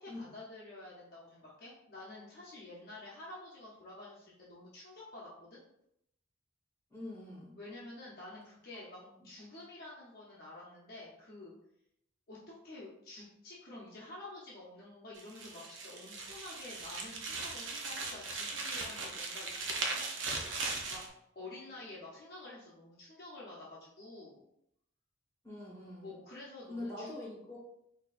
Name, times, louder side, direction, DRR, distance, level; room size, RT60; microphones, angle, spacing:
voice 1, 0.0-5.6 7.6-11.5 12.3-20.0 20.9-21.0 21.3-24.4 26.0-27.1, left 2 dB, 50° left, -6 dB, 0.8 m, -49 dB
voice 2, 6.9-7.5 9.1-9.2 25.4-26.2 26.7-27.6, left 1 dB, 15° left, -5 dB, 1.5 m, -44 dB
sound 1, 15.1-21.1, right 3 dB, 70° right, 0.6 m, -39 dB
4.4 x 2.7 x 2.5 m, 0.77 s
head